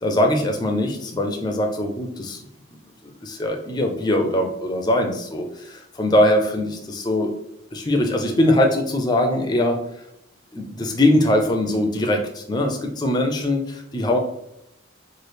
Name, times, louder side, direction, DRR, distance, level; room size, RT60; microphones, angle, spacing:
voice 1, 0.0-2.4 3.2-7.3 7.7-9.8 10.5-14.2, left 1 dB, 20° left, 3 dB, 0.4 m, -21 dB
3.0 x 2.4 x 3.2 m, 0.81 s
head